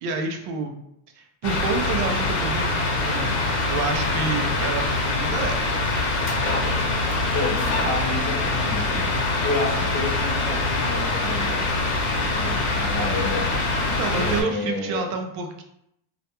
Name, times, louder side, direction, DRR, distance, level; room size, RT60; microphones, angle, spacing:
voice 1, 0.0-0.7 1.2-3.4 3.7-5.7 12.3-12.5 14.0-15.6, right 4 dB, 55° right, 4 dB, 0.5 m, -29 dB
sound 1, 1.4-14.4, left 2 dB, 90° left, 0.9 m, -24 dB
voice 2, 3.9-4.3 7.3-9.0 9.4-11.7 12.2-13.5 14.1-15.0, left 2 dB, 25° left, -3 dB, 0.8 m, -30 dB
2.4 x 2.1 x 2.8 m, 0.76 s
cardioid pair, 145°, 46 cm